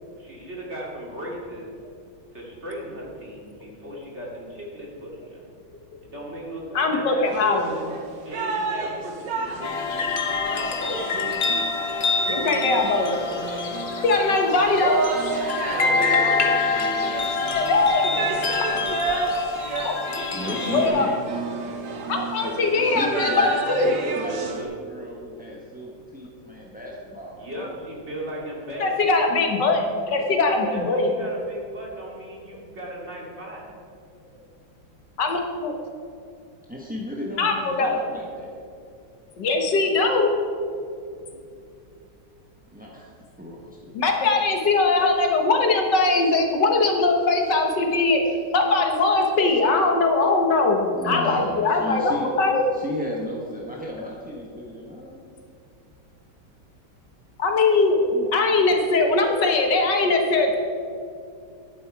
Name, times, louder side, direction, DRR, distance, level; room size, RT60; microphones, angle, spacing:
voice 1, 0.2-1.7 2.3-5.4 6.0-7.8 8.2-9.5 9.8-11.1 15.6-16.5 20.1-20.3 27.3-28.9 30.7-33.6, equal, 35° right, -3 dB, 2.6 m, -36 dB
voice 2, 6.7-7.7 12.3-13.2 14.0-15.0 17.5-18.4 19.8-19.9 20.7-21.1 22.1-23.9 28.8-31.1 35.2-35.7 37.4-38.0 39.4-40.3 43.9-48.2 48.5-52.6 54.0-54.1 57.4-60.6, left 3 dB, 65° left, 3 dB, 1.7 m, -21 dB
sound 1, 7.3-24.6, right 4 dB, 70° right, 1.8 m, -31 dB
sound 2, 9.6-20.9, left 4 dB, 40° left, 1.1 m, -26 dB
voice 3, 20.3-21.1 22.8-23.5 23.8-27.7 36.7-38.5 42.7-44.0 48.2-48.4 50.9-52.3 52.7-55.3, left 1 dB, 5° right, -3 dB, 0.8 m, -34 dB
11.5 x 10.5 x 4.7 m, 2.4 s
omnidirectional pair, 2.1 m